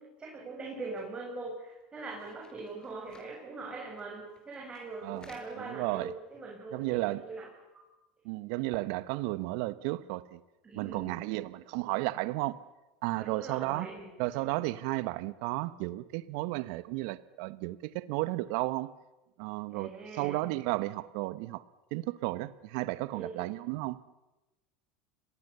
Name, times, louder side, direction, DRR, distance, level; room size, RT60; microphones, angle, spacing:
voice 1, 0.0-7.5 10.6-11.2 13.2-14.1 19.7-20.4 23.1-23.5, right 3 dB, 25° right, 7.2 m, -42 dB
sound 1, 1.0-1.1 1.5-1.6 1.8-3.3 4.0-4.1 4.3-5.5 6.0-6.1, left 3 dB, 20° left, 6.4 m, -59 dB
voice 2, 5.0-6.1 6.7-7.2 8.2-10.4 10.7-12.6 13.0-13.9 14.2-18.9 19.4-21.6 21.9-24.0, right 19 dB, 65° right, 1.2 m, -33 dB
30.0 x 22.0 x 6.9 m
hypercardioid pair, 90°, 4 cm